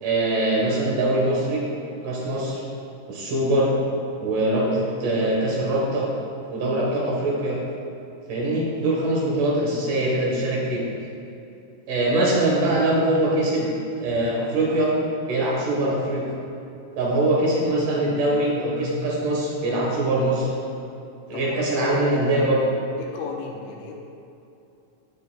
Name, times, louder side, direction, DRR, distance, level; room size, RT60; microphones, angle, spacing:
voice 1, 0.0-1.6 2.0-2.6 3.1-3.7 4.2-6.1 6.5-7.6 8.3-10.8 11.9-13.7 14.0-14.9 15.3-16.3 17.0-20.5 21.3-22.6, right 1 dB, 80° right, -5 dB, 1.8 m, -22 dB
voice 2, 21.3-22.2 23.0-24.0, left 4 dB, 80° left, 0 dB, 2.9 m, -34 dB
10.5 x 8.1 x 2.2 m, 2.8 s
omnidirectional pair, 5.6 m